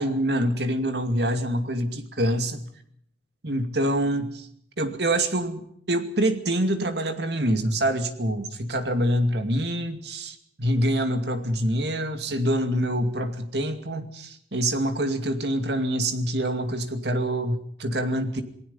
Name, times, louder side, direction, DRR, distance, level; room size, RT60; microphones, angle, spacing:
voice 1, 0.0-2.6 3.4-4.5 4.8-18.4, right 1 dB, 65° right, 8 dB, 2.5 m, -26 dB
27.5 x 19.0 x 5.6 m, 0.67 s
head